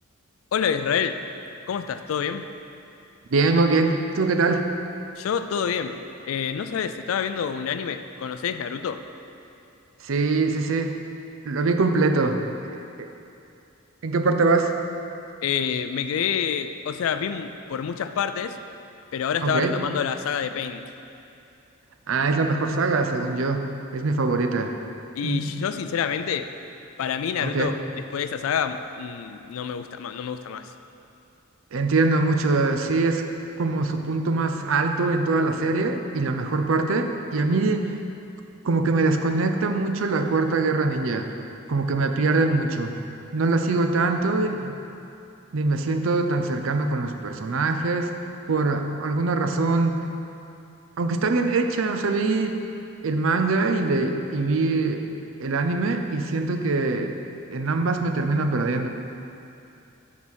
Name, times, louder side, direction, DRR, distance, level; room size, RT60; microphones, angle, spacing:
voice 1, 0.5-1.2 1.7-2.5 5.2-6.0 6.3-9.0 15.4-18.6 19.1-20.8 25.2-26.5 27.0-27.8 28.1-30.7, left 7 dB, 80° left, 10 dB, 0.4 m, -27 dB
voice 2, 3.3-4.7 10.0-10.9 11.4-12.4 13.0-13.1 14.0-14.7 19.4-19.7 22.1-23.7 23.9-24.7 25.2-25.5 27.4-27.7 31.7-33.2 33.6-37.9 38.6-41.3 41.7-42.9 43.3-44.8 45.5-48.1 48.5-50.1 51.0-52.6 53.0-55.0 55.4-57.2 57.5-58.9, right 3 dB, 70° right, 6 dB, 0.5 m, -23 dB
7.2 x 4.0 x 6.3 m, 2.7 s
head